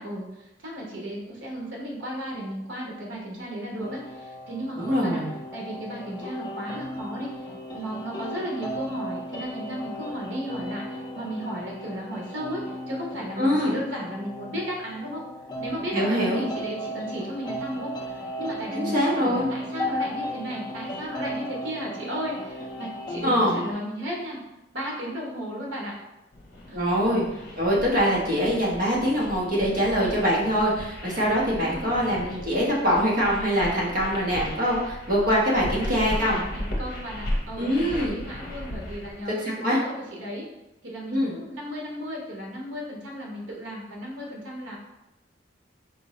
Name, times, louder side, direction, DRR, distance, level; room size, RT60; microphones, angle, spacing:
voice 1, 0.0-5.2 5.5-15.2 15.6-24.4 24.7-26.0 26.7-26.8 31.6-31.9 35.2-40.5 40.8-44.8, equal, 85° right, -2 dB, 0.9 m, -35 dB
sound 1, 3.8-23.7, equal, 20° left, 0.4 m, -36 dB
voice 2, 4.8-5.3 13.4-13.7 15.9-16.5 18.7-19.5 23.2-23.6 26.7-27.2 27.6-36.4 37.6-38.2 39.4-39.8 41.1-41.3, equal, 50° right, -4 dB, 1.0 m, -23 dB
sound 2, 26.3-39.2, left 1 dB, 55° left, 0.8 m, -36 dB
4.3 x 2.8 x 3.1 m, 0.93 s
head